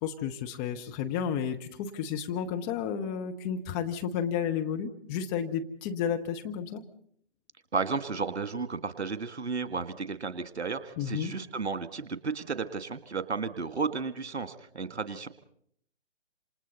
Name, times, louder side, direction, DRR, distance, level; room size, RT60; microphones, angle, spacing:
voice 1, 0.0-6.8 11.0-11.3, left 8 dB, 15° left, 4 dB, 0.8 m, -32 dB
voice 2, 7.7-15.3, right 4 dB, 70° right, 12 dB, 1.9 m, -33 dB
27.5 x 27.5 x 4.1 m, 0.67 s
figure-of-eight pair, 130°, 34 cm